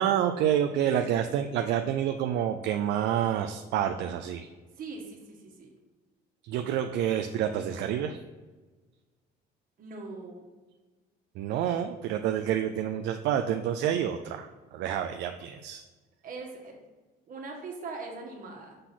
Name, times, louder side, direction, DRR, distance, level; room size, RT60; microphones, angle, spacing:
voice 1, 0.0-4.5 6.4-8.2 11.4-15.8, right 10 dB, 70° right, 7 dB, 0.5 m, -28 dB
voice 2, 4.7-5.7 9.8-10.5 16.2-16.8 17.3-18.8, right 3 dB, 50° right, 1 dB, 1.6 m, -41 dB
6.5 x 4.0 x 5.8 m, 1.3 s
cardioid pair, 115°, 18 cm